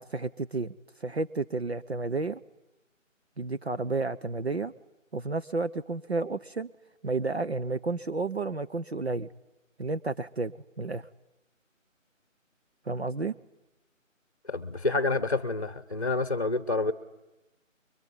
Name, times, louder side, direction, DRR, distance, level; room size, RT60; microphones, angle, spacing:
voice 1, 0.0-2.4 3.4-4.7 5.1-6.7 7.0-9.3 9.8-11.1 12.8-13.4, right 3 dB, 50° right, 11 dB, 1.0 m, -31 dB
voice 2, 14.5-16.9, left 3 dB, 30° left, 13 dB, 1.0 m, -28 dB
24.5 x 23.5 x 9.8 m, 0.94 s
figure-of-eight pair, 175°, 40 cm